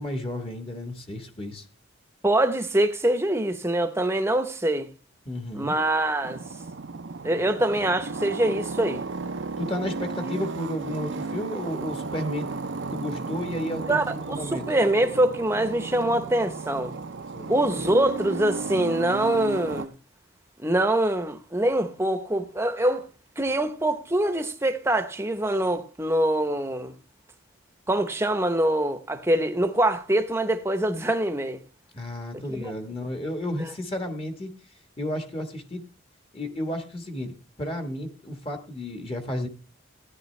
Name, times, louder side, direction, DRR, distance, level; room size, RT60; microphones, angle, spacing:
voice 1, 0.0-1.6 5.2-5.8 9.6-12.5 12.9-14.6 17.3-17.5 31.9-34.5 35.0-35.8 36.3-37.3 37.6-39.5, left 1 dB, 25° left, 1.3 m, -32 dB
voice 2, 2.2-4.9 5.5-6.4 7.2-9.0 13.9-16.9 17.5-19.9 20.6-23.1 23.4-26.9 27.9-31.6 32.5-32.7 33.6-33.7, right 1 dB, 10° right, 0.8 m, -24 dB
sound 1, 6.2-19.9, right 3 dB, 60° right, 0.6 m, -34 dB
15.0 x 10.0 x 3.2 m
head